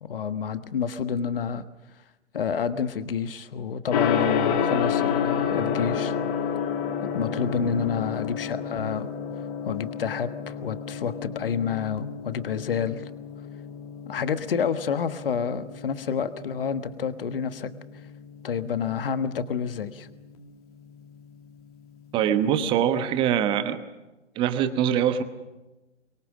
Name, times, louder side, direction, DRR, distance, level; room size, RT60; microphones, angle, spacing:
voice 1, 0.0-1.6 2.3-6.2 7.0-9.1 9.6-13.1 14.1-17.7 18.4-20.1, left 7 dB, 50° left, 11 dB, 1.4 m, -29 dB
Gong, 3.9-22.9, left 7 dB, 30° left, 2.0 m, -31 dB
voice 2, 22.1-23.8 24.3-25.2, right 9 dB, 15° right, 11 dB, 1.1 m, -23 dB
24.0 x 23.0 x 6.3 m, 1.1 s
figure-of-eight pair, 130°, 35 cm